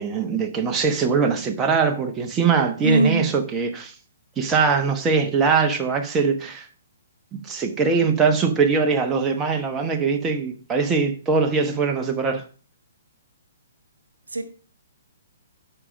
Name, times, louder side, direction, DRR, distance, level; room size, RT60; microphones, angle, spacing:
voice 1, 0.0-3.9 4.4-6.7 7.4-12.4, right 5 dB, 20° right, 0.9 m, -22 dB
voice 2, 2.8-3.2 14.3-14.4, right 2 dB, 80° right, 1.0 m, -20 dB
8.6 x 5.1 x 5.0 m
figure-of-eight pair, 125°, 0 cm